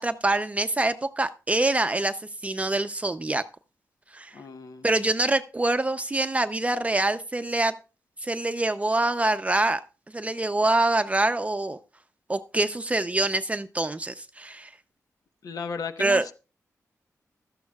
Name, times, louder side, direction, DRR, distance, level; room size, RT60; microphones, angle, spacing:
voice 1, 0.0-2.2 2.4-3.4 4.1-4.3 4.8-7.7 8.2-9.8 10.1-11.8 12.3-14.7 16.0-16.3, right 2 dB, 20° right, 10 dB, 0.6 m, -25 dB
voice 2, 4.3-4.9 15.4-16.3, left 5 dB, 75° left, 9 dB, 1.1 m, -35 dB
16.0 x 13.0 x 2.3 m, 0.33 s
cardioid pair, 85°, 6 cm